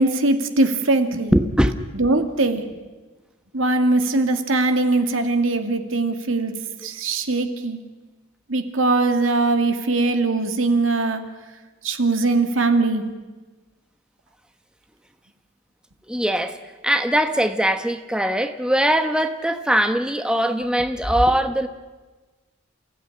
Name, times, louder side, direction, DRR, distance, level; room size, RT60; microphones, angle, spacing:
voice 1, 0.0-1.3 1.9-2.6 3.5-6.6 6.8-7.8 8.5-11.3 11.8-13.0, right 2 dB, 80° right, 7 dB, 2.3 m, -21 dB
voice 2, 1.3-1.7 16.1-16.6 16.8-21.7, equal, 5° right, 8 dB, 1.1 m, -21 dB
28.5 x 16.5 x 9.8 m, 1.2 s
head